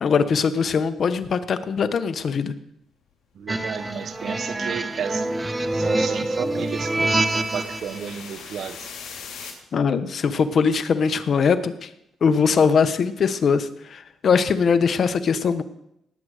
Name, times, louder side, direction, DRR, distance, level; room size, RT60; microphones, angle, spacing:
voice 1, 0.0-2.5 9.7-11.9 12.2-15.6, left 6 dB, 50° left, 1.0 m, -21 dB
voice 2, 3.3-5.3 5.7-8.9 9.4-9.6, right 7 dB, 60° right, 1.0 m, -33 dB
sound 1, 3.5-9.5, left 6 dB, 80° left, 3.1 m, -43 dB
sound 2, 3.5-8.0, right 2 dB, 20° right, 0.9 m, -25 dB
18.5 x 7.8 x 5.0 m
cardioid pair, 90°, 0 cm